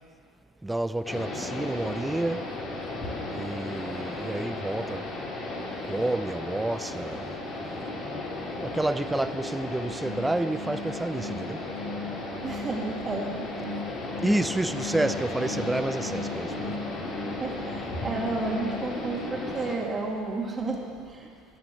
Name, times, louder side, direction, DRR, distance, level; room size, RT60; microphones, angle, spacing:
voice 1, 0.6-2.5 3.3-5.1 5.8-7.3 8.6-11.6 14.2-16.8, right 2 dB, 10° right, 0.4 m, -29 dB
sound 1, 1.0-19.7, left 2 dB, 40° left, 3.3 m, -35 dB
sound 2, 9.8-19.1, left 2 dB, 85° right, 2.8 m, -39 dB
voice 2, 12.4-13.6 17.4-21.3, right 3 dB, 30° right, 2.3 m, -32 dB
18.5 x 7.1 x 7.8 m
hypercardioid pair, 70°, 0 cm